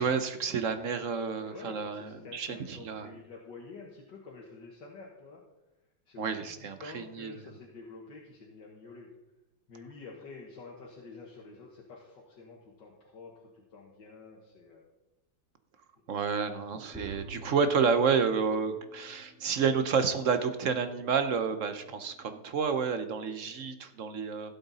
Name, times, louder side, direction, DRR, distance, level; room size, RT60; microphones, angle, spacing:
voice 1, 0.0-3.1 6.2-7.3 16.1-24.6, right 6 dB, 55° right, 9 dB, 0.9 m, -30 dB
voice 2, 1.4-5.4 6.1-9.1 9.7-14.9, left 4 dB, 70° left, -2 dB, 2.1 m, -48 dB
sound 1, 16.9-23.6, right 2 dB, 5° right, 4.3 m, -51 dB
16.0 x 7.8 x 4.1 m, 1.0 s
omnidirectional pair, 2.0 m